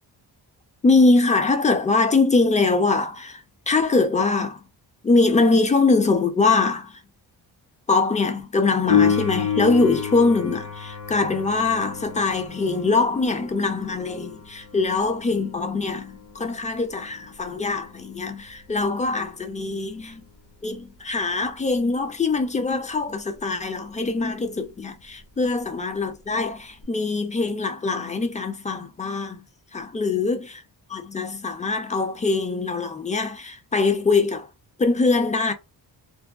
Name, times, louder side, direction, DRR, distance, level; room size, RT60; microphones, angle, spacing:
voice 1, 0.8-3.4 3.7-4.6 5.0-7.0 7.9-20.3 20.6-29.4 29.7-30.6 30.9-34.5 34.8-35.5, left 3 dB, 20° left, 0.4 m, -22 dB
Piano, 8.9-19.3 26.8-26.9, left 7 dB, 75° left, 1.2 m, -29 dB
2.6 x 2.2 x 2.3 m
cardioid pair, 105°, 41 cm